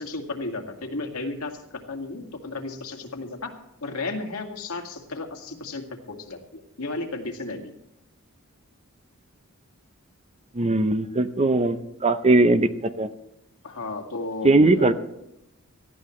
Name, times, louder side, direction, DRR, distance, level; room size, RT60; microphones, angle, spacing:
voice 1, 0.0-7.7 13.6-14.9, left 3 dB, 80° left, 3 dB, 2.2 m, -34 dB
voice 2, 10.6-11.8 12.0-12.7 13.0-13.1 14.4-14.9, right 2 dB, 30° right, 10 dB, 0.7 m, -19 dB
18.5 x 14.0 x 3.2 m, 0.85 s
head